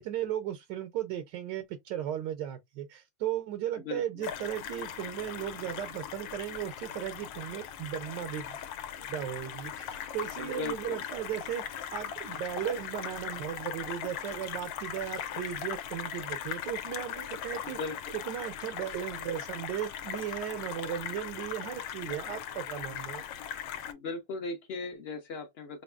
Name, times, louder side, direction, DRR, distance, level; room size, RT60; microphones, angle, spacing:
voice 1, 0.0-8.6 9.0-17.8 18.3-23.2, right 11 dB, 75° right, 1.2 m, -36 dB
voice 2, 3.8-4.3 10.4-11.0 17.6-17.9 23.9-25.8, left 3 dB, 50° left, 0.7 m, -38 dB
sound 1, 4.2-23.9, left 9 dB, 85° left, 1.3 m, -39 dB
5.1 x 2.7 x 2.2 m
omnidirectional pair, 2.0 m